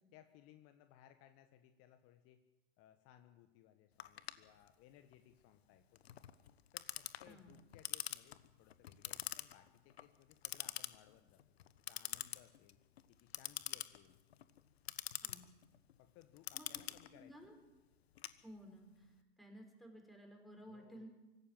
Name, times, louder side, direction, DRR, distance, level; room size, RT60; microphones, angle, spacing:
voice 1, 0.1-2.4 2.8-6.0 6.7-11.4 11.9-12.8 13.1-14.2 16.0-17.3 20.7-21.1, left 11 dB, 45° left, 8 dB, 1.4 m, -64 dB
Clock, 4.0-18.9, left 11 dB, 75° left, 1.2 m, -47 dB
voice 2, 7.2-7.6 15.2-15.5 16.5-16.8 17.2-17.5 18.4-21.1, equal, ahead, 2 dB, 5.6 m, -56 dB
25.0 x 14.5 x 7.8 m, 1.1 s
figure-of-eight pair, 90°, 32 cm